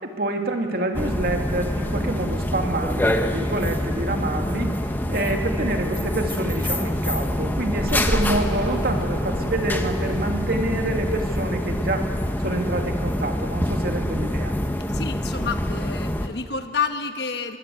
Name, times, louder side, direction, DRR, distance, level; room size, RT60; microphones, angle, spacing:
voice 1, 0.0-4.7 5.1-12.1 12.4-14.6, right 2 dB, 50° right, 3 dB, 2.3 m, -27 dB
sound 1, 0.9-16.3, left 1 dB, 10° left, 1.0 m, -25 dB
voice 2, 14.9-17.6, left 5 dB, 60° left, 7 dB, 1.3 m, -29 dB
23.0 x 19.5 x 8.3 m, 2.3 s
head